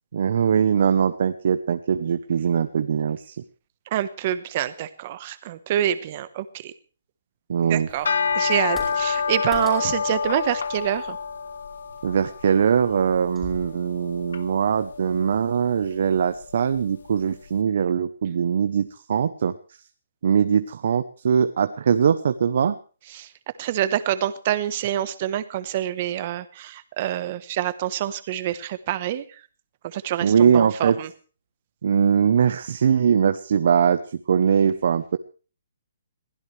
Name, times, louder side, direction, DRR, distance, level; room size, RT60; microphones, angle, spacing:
voice 1, 0.1-3.4 7.5-7.9 12.0-19.5 20.2-22.8 30.2-31.0 31.8-34.0 34.3-35.2, right 7 dB, 55° right, 11 dB, 0.8 m, -21 dB
voice 2, 3.9-6.7 7.6-11.2 23.1-23.3 23.6-29.4 29.8-31.1, right 11 dB, 30° right, 13 dB, 1.1 m, -26 dB
sound 1, 7.9-17.2, left 6 dB, 75° left, 1.5 m, -29 dB
sound 2, 8.5-13.6, left 2 dB, 5° left, 4.7 m, -43 dB
22.0 x 16.0 x 3.3 m, 0.37 s
hypercardioid pair, 170°, 0 cm